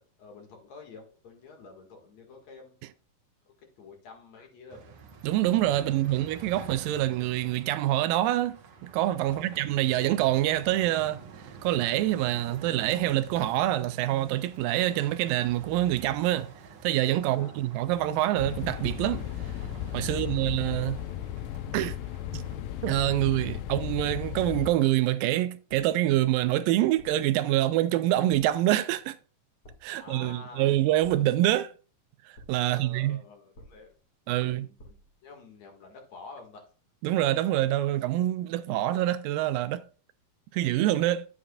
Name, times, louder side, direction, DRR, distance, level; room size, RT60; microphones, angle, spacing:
voice 1, 0.0-2.7 3.6-4.9 5.9-6.0 9.2-9.6 17.2-17.7 20.0-20.5 29.9-30.8 32.6-33.9 34.3-36.7, left 4 dB, 50° left, 2.8 m, -49 dB
sound 1, 4.7-22.9, right 5 dB, 60° right, 1.9 m, -48 dB
voice 2, 5.2-11.2 11.6-16.5 16.8-19.2 19.9-21.0 21.7-22.0 22.3-22.5 22.8-29.2 29.8-31.7 32.5-33.2 34.3-34.7 37.0-39.8 40.5-41.3, right 14 dB, 80° right, 2.1 m, -26 dB
sound 2, 18.4-24.7, left 12 dB, 80° left, 2.3 m, -35 dB
sound 3, 27.0-27.4 28.3-28.8 29.6-30.1 31.0-31.6 32.3-32.8 33.5-34.1 34.8-35.2, equal, 35° left, 2.0 m, -53 dB
11.5 x 8.5 x 2.4 m
omnidirectional pair, 4.3 m